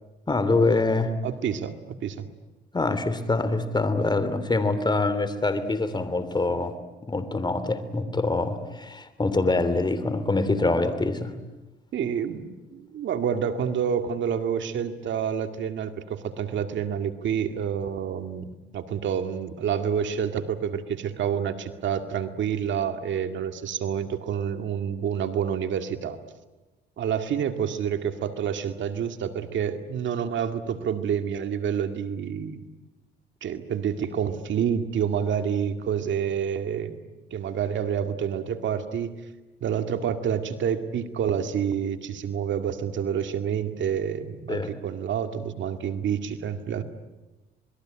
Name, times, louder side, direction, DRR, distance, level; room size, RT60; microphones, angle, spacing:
voice 1, 0.3-1.1 2.7-6.7 7.0-11.3 44.5-44.7, left 3 dB, 20° left, 11 dB, 3.1 m, -25 dB
voice 2, 1.2-2.3 11.9-26.2 27.0-32.7 33.4-37.0 37.3-39.1 39.6-46.8, right 8 dB, 70° right, 8 dB, 2.2 m, -28 dB
27.5 x 21.5 x 8.9 m, 1.1 s
cardioid pair, 90°, 20 cm